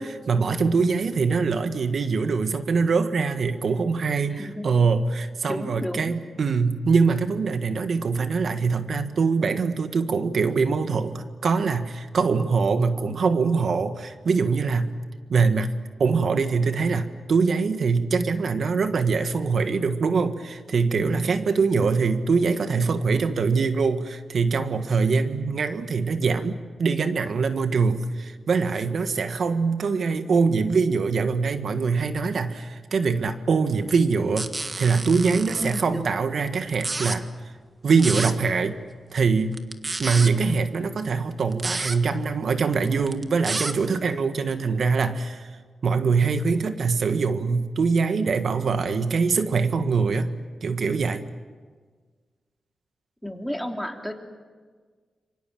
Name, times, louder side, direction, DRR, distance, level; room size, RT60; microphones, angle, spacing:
voice 1, 0.0-14.9 15.3-15.7 16.0-34.5 34.8-37.3 37.8-38.8 39.1-39.6 40.0-45.5 45.8-50.3 50.6-51.2, right 4 dB, 65° right, 9 dB, 1.7 m, -23 dB
voice 2, 4.3-4.7 5.5-6.1 21.4-21.9 35.6-36.2 53.2-54.1, equal, 5° left, 2 dB, 3.2 m, -33 dB
sound 1, 34.4-35.8 36.7-37.2 38.0-38.3 39.5-40.3 41.5-42.0 43.0-43.7, right 3 dB, 30° right, 1.6 m, -30 dB
27.0 x 24.0 x 7.7 m, 1.5 s
cardioid pair, 80°, 0 cm